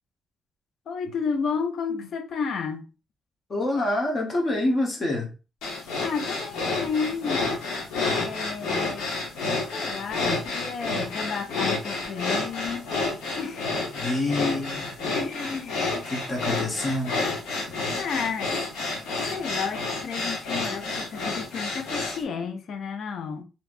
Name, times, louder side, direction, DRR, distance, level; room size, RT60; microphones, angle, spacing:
voice 1, 0.9-2.8 6.0-7.5 8.0-9.0 9.7-12.9 13.3-13.8 14.7-14.8 15.1-16.0 18.0-18.6 19.3-23.4, left 5 dB, 65° left, 0.5 m, -32 dB
voice 2, 3.5-5.3 13.9-14.9 16.0-17.2, left 2 dB, 40° left, 1.0 m, -27 dB
sound 1, 5.6-22.2, left 3 dB, 85° left, 0.9 m, -29 dB
3.2 x 2.8 x 2.5 m
cardioid pair, 90°, 0 cm